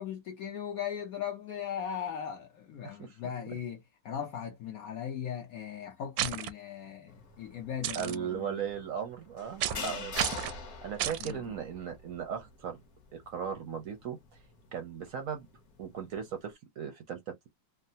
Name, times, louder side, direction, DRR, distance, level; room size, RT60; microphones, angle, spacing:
voice 1, 0.0-8.5 9.7-10.1 11.2-11.4, left 8 dB, 80° left, 0.8 m, -38 dB
voice 2, 2.8-3.2 7.9-10.2 10.8-12.8 13.1-14.2 14.7-15.5 15.8-17.5, right 8 dB, 65° right, 0.8 m, -37 dB
sound 1, 6.2-6.5 7.8-8.2 9.6-9.9 10.2-10.6 11.0-11.3, right 12 dB, 85° right, 1.3 m, -31 dB
sound 2, 7.1-16.5, left 5 dB, 55° left, 1.2 m, -46 dB
3.6 x 2.0 x 2.6 m
omnidirectional pair, 2.1 m